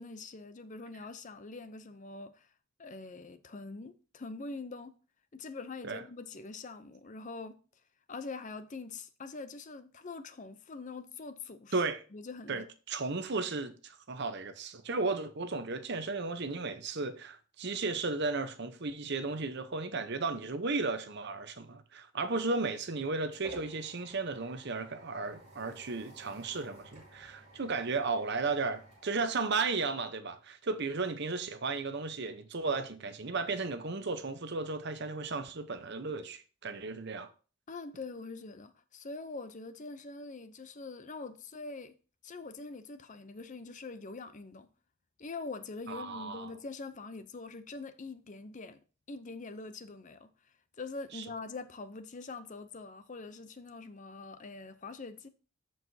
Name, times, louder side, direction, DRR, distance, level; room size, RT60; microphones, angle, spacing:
voice 1, 0.0-2.5 2.8-4.9 5.3-7.6 8.1-11.8 12.1-12.6 37.7-41.9 42.2-44.7 45.2-48.8 49.1-50.3 50.8-55.3, left 3 dB, 35° left, 0.6 m, -44 dB
voice 2, 11.7-12.0 12.5-37.3 45.9-46.5 51.1-51.2, right 3 dB, 50° right, 0.8 m, -34 dB
sound 1, 22.8-30.0, right 1 dB, 30° right, 2.8 m, -53 dB
13.5 x 4.8 x 2.7 m
head